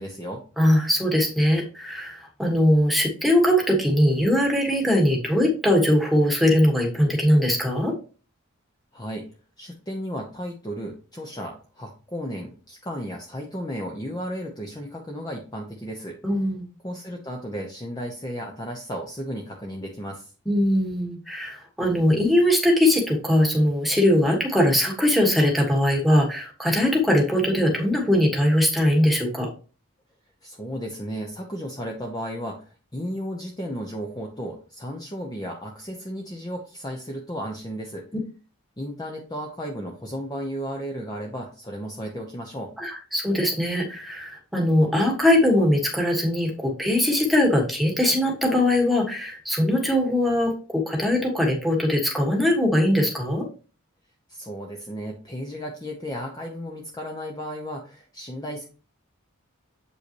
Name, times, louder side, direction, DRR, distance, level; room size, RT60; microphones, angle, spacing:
voice 1, 0.0-0.4 8.9-9.2 9.6-16.2 16.8-20.3 30.4-38.1 38.8-42.7 54.3-58.6, equal, 20° left, 0 dB, 0.9 m, -34 dB
voice 2, 0.6-7.9 16.2-16.7 20.4-29.5 42.8-53.5, left 1 dB, ahead, 0 dB, 1.5 m, -21 dB
8.1 x 5.6 x 3.0 m, 0.36 s
head